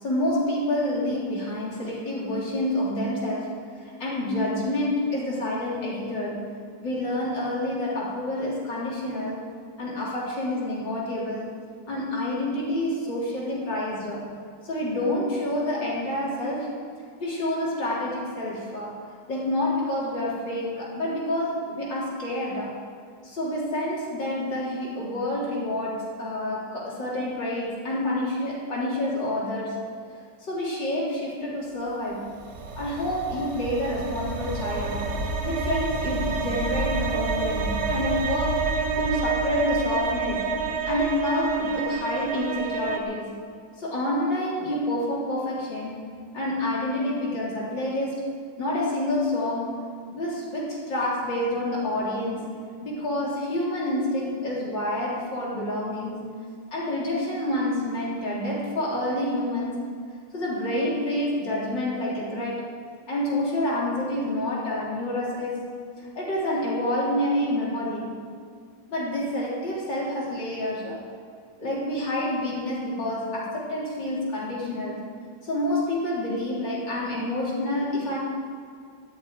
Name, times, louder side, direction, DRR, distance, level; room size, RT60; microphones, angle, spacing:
voice 1, 0.0-3.5 3.8-6.5 6.8-9.4 9.8-11.5 11.9-14.3 14.6-16.7 17.2-19.0 19.3-22.7 23.2-29.8 30.4-32.3 32.8-35.2 35.4-38.6 39.0-40.4 40.8-43.4 43.8-46.0 46.3-48.2 48.6-49.8 50.1-52.5 52.8-56.2 56.7-59.8 60.3-62.7 63.1-65.7 66.0-68.2 68.9-71.0 71.6-75.0 75.4-78.2, left 1 dB, 70° left, -6 dB, 4.2 m, -28 dB
sound 1, 32.2-43.0, right 4 dB, 65° right, 1.9 m, -28 dB
13.5 x 7.4 x 9.5 m, 2.2 s
omnidirectional pair, 2.1 m